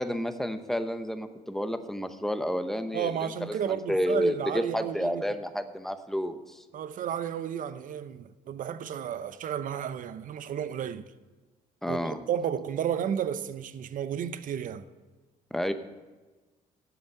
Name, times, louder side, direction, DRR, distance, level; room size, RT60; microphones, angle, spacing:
voice 1, 0.0-6.6 11.8-12.2 15.5-15.7, equal, ahead, 0.8 m, -30 dB
voice 2, 2.9-5.2 6.7-11.1 11.9-14.8, right 9 dB, 50° right, 0.7 m, -32 dB
11.0 x 7.1 x 6.6 m
cardioid pair, 110°, 17 cm